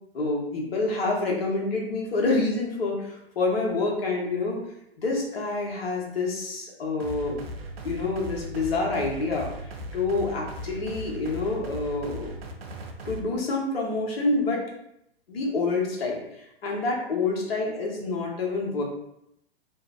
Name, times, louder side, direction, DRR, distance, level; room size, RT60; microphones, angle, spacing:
voice 1, 0.1-4.6 5.0-7.4 7.8-12.3 13.0-14.6 15.3-18.8, left 3 dB, 70° left, -1 dB, 0.9 m, -27 dB
sound 1, 7.0-13.2, right 1 dB, 70° right, 0.5 m, -38 dB
2.5 x 2.0 x 2.4 m, 0.78 s
figure-of-eight pair, 115°, 31 cm